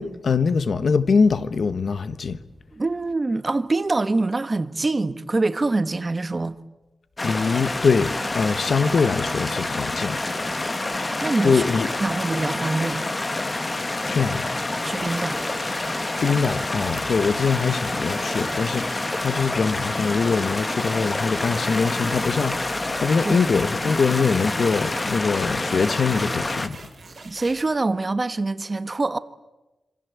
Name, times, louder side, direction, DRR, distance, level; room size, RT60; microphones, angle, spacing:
voice 1, 0.0-2.4 7.2-10.2 11.4-11.9 14.1-14.4 16.2-26.9, left 5 dB, 60° left, 1.3 m, -23 dB
voice 2, 2.7-6.6 11.2-11.6 12.0-13.1 14.8-15.4 23.2-23.5 27.2-29.2, right 3 dB, 30° right, 1.1 m, -25 dB
sound 1, 7.2-26.7, left 2 dB, 25° left, 1.5 m, -27 dB
sound 2, 15.0-25.2 25.7-27.6, right 4 dB, 45° right, 5.7 m, -43 dB
26.5 x 26.5 x 8.4 m
wide cardioid pair, 140°, 0 cm